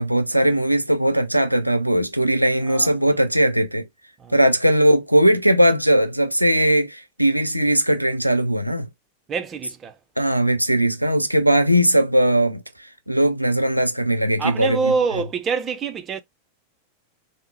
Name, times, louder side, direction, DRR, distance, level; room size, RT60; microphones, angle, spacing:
voice 1, 0.0-3.9 4.3-8.9 10.2-12.6 13.1-14.9, right 1 dB, 90° right, 0.4 m, -19 dB
voice 2, 9.3-10.0 14.4-16.2, right 5 dB, 25° right, 0.5 m, -25 dB
3.6 x 2.1 x 2.9 m
figure-of-eight pair, 90°, 0 cm